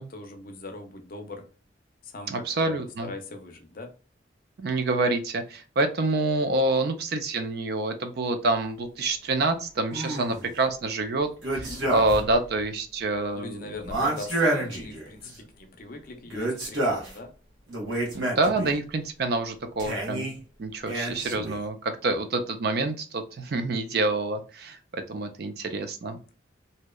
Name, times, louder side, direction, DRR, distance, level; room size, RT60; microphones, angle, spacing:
voice 1, 0.0-1.5 2.0-3.9 11.7-12.0 13.3-17.3, left 2 dB, 45° left, 5 dB, 0.5 m, -41 dB
voice 2, 2.3-3.1 4.6-13.7 18.1-20.3 20.6-26.2, right 2 dB, 55° right, 8 dB, 0.4 m, -27 dB
sound 1, 9.9-10.5 11.4-12.4 12.6-12.7 13.8-15.4 16.2-17.1 17.7-18.8 19.8-20.4 20.9-21.6, right 1 dB, 85° right, 1.1 m, -29 dB
2.7 x 2.1 x 2.2 m, 0.36 s
head